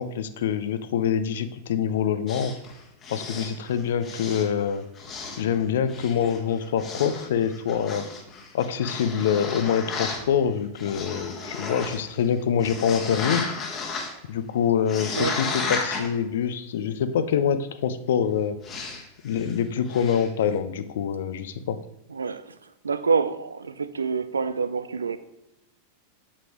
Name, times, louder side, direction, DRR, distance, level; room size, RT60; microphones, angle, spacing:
voice 1, 0.0-2.5 3.1-4.8 5.4-8.0 8.5-13.4 14.3-18.6 19.2-21.8, left 8 dB, 60° left, 12 dB, 0.5 m, -25 dB
sound 1, 2.3-4.6 4.9-5.6 5.9-10.2 10.7-12.3 12.6-14.2 14.8-16.1 18.6-19.0 19.3-19.5 19.8-20.3, left 4 dB, 30° left, 1.3 m, -34 dB
voice 2, 22.1-22.5 22.8-25.2, right 5 dB, 75° right, 13 dB, 0.4 m, -26 dB
8.3 x 7.7 x 3.0 m, 0.90 s
figure-of-eight pair, 90°, 0 cm